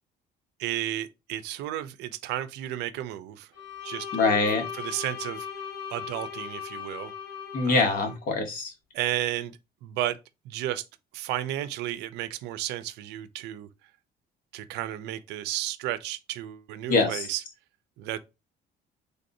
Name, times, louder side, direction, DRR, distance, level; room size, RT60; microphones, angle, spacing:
voice 1, 0.6-3.5 3.8-4.1 4.7-5.5 5.9-7.1 7.6-8.0 8.9-10.2 10.5-10.8 11.1-13.7 14.5-17.4 18.0-18.2, right 13 dB, 85° right, 0.4 m, -33 dB
Bowed string instrument, 3.5-8.2, left 8 dB, 85° left, 1.1 m, -38 dB
voice 2, 4.1-4.6 7.5-8.7 16.9-17.3, left 3 dB, 55° left, 1.1 m, -24 dB
3.4 x 2.5 x 2.6 m
cardioid pair, 110°, 17 cm